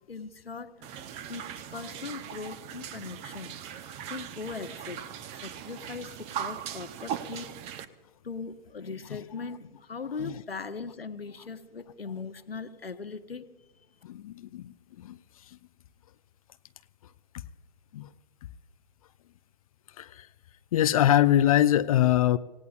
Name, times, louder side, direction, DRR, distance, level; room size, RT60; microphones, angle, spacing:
voice 1, 0.0-3.6 4.0-5.1 5.4-7.7 8.2-13.5, left 4 dB, 85° left, 1.0 m, -40 dB
sound 1, 0.8-7.8, right 9 dB, 20° right, 0.8 m, -39 dB
voice 2, 14.0-14.7 15.0-15.1 17.9-18.1 20.0-20.1 20.7-22.4, left 12 dB, 40° left, 0.5 m, -22 dB
26.5 x 17.5 x 2.4 m
figure-of-eight pair, 120°, 29 cm